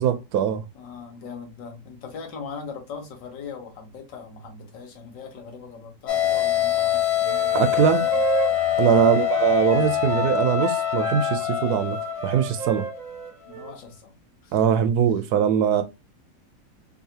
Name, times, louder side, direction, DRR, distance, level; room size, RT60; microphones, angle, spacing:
voice 1, 0.0-0.6 7.5-8.0 8.8-12.0 12.2-12.9 14.5-15.8, right 8 dB, 70° right, 1.0 m, -21 dB
voice 2, 0.8-7.9 8.1-8.2 8.9-9.1 13.5-14.1 14.4-14.5, left 5 dB, 85° left, 1.7 m, -40 dB
sound 1, 6.1-13.0, left 12 dB, 65° left, 0.6 m, -24 dB
sound 2, 7.2-13.7, right 7 dB, 45° right, 0.5 m, -32 dB
4.7 x 2.7 x 2.7 m
omnidirectional pair, 1.9 m